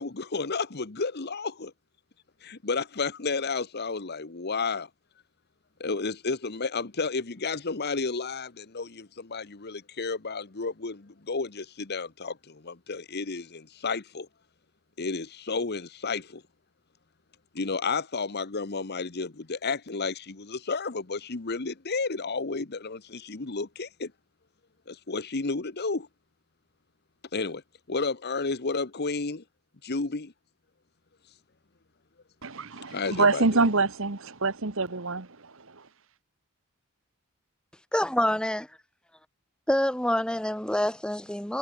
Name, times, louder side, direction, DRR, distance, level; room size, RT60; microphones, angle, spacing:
voice 1, 0.0-1.7 2.4-4.9 5.8-14.3 15.0-16.4 17.5-24.1 24.9-26.1 27.3-27.6 27.9-29.4 29.8-30.3 32.9-33.4, left 4 dB, 50° left, 1.1 m, -32 dB
voice 2, 32.4-35.9, right 3 dB, 60° right, 1.6 m, -26 dB
voice 3, 37.9-38.7 39.7-41.6, left 1 dB, 5° left, 1.0 m, -26 dB
head